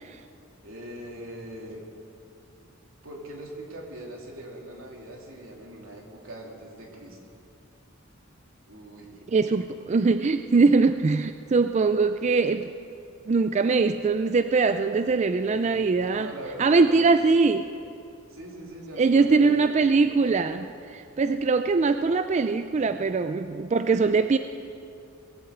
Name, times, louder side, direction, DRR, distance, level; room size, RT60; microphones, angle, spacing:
voice 1, 0.6-1.8 3.0-7.3 8.7-9.3 15.5-15.9 16.1-17.1 18.3-19.8 20.2-20.3, right 1 dB, 85° right, -1 dB, 3.0 m, -41 dB
voice 2, 9.3-12.7 13.3-16.3 16.6-17.7 19.0-24.4, right 4 dB, 35° right, 10 dB, 0.4 m, -22 dB
20.0 x 8.5 x 7.9 m, 2.6 s
head